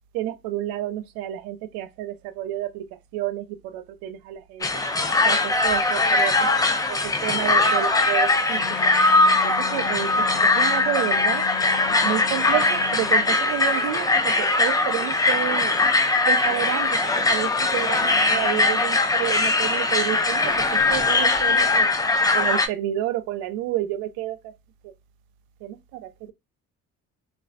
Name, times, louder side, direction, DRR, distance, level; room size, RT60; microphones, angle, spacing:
voice 1, 0.1-2.8 3.1-4.8 5.2-6.5 6.9-8.9 9.4-11.4 12.0-15.7 16.2-17.0 17.3-21.9 22.3-24.4 24.8-24.9 25.6-26.3, right 13 dB, 75° right, 0.5 m, -30 dB
sound 1, 4.6-22.7, left 3 dB, 10° left, 0.4 m, -21 dB
Wind instrument woodwind instrument, 8.5-13.4, left 12 dB, 60° left, 0.7 m, -36 dB
2.3 x 2.3 x 2.3 m
hypercardioid pair, 60°, 36 cm